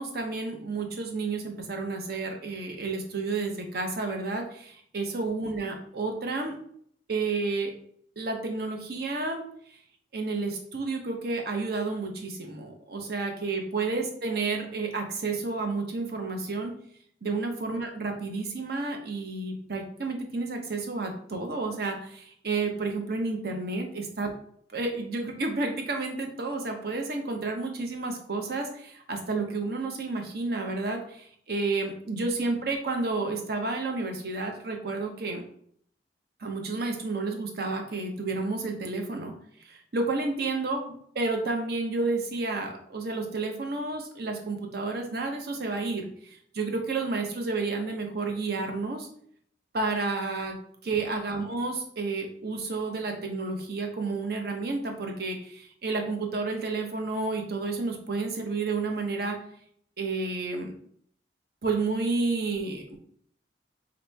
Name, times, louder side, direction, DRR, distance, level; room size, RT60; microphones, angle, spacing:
voice 1, 0.0-6.5 7.1-7.7 8.2-9.4 10.1-16.7 17.2-24.3 24.7-35.4 36.4-39.3 39.7-49.1 49.7-50.6 50.8-59.4 60.0-60.7 61.6-63.0, right 3 dB, 60° right, 3 dB, 0.8 m, -31 dB
3.9 x 2.9 x 3.4 m, 0.63 s
head